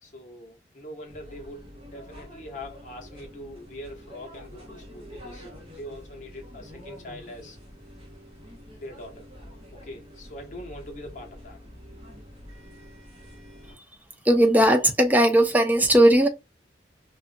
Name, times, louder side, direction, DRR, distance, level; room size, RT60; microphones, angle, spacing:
voice 1, 0.0-5.4 5.8-7.6 8.7-9.3 9.7-11.6, left 1 dB, 40° left, 0.9 m, -42 dB
sound 1, 1.1-13.7, equal, 30° right, 1.3 m, -46 dB
voice 2, 14.2-16.3, right 1 dB, 10° right, 0.4 m, -18 dB
2.7 x 2.4 x 2.5 m
head